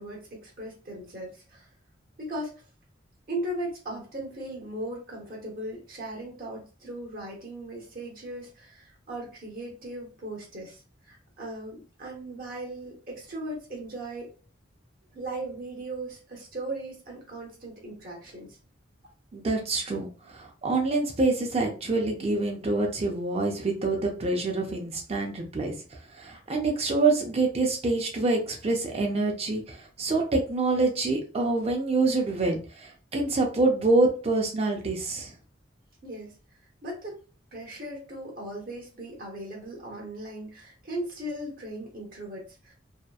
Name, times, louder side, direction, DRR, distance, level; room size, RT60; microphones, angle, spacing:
voice 1, 0.0-1.7 2.2-2.5 3.3-14.3 15.1-18.6 36.0-36.3 36.8-37.2 37.5-42.7, right 1 dB, 50° right, -2 dB, 0.9 m, -38 dB
voice 2, 19.3-25.7 26.1-35.3, right 3 dB, 35° right, 2 dB, 0.4 m, -26 dB
2.7 x 2.1 x 2.2 m, 0.37 s
head